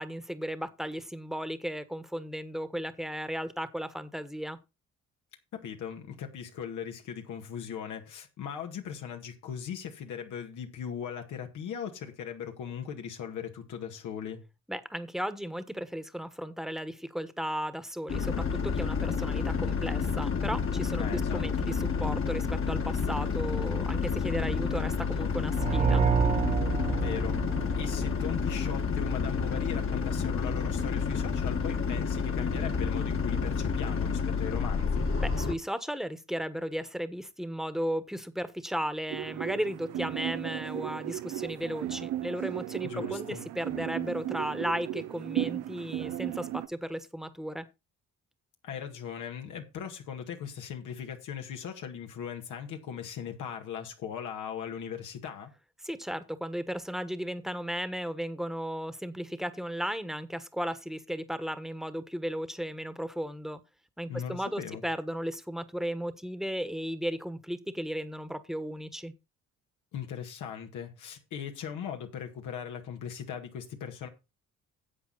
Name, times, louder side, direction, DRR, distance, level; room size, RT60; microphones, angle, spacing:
voice 1, 0.0-4.6 14.7-26.0 35.2-47.6 55.8-63.6 64.0-69.1, equal, ahead, 1.3 m, -35 dB
voice 2, 5.5-14.4 21.0-21.7 26.9-27.4 27.8-35.1 42.8-43.4 48.6-55.5 64.1-64.8 69.9-74.1, left 8 dB, 85° left, 2.0 m, -39 dB
sound 1, 18.1-35.5, left 5 dB, 45° left, 1.6 m, -30 dB
sound 2, 25.5-28.4, right 6 dB, 25° right, 0.4 m, -28 dB
sound 3, 39.1-46.7, right 14 dB, 85° right, 0.7 m, -35 dB
11.0 x 7.8 x 4.0 m
cardioid pair, 90°, 30 cm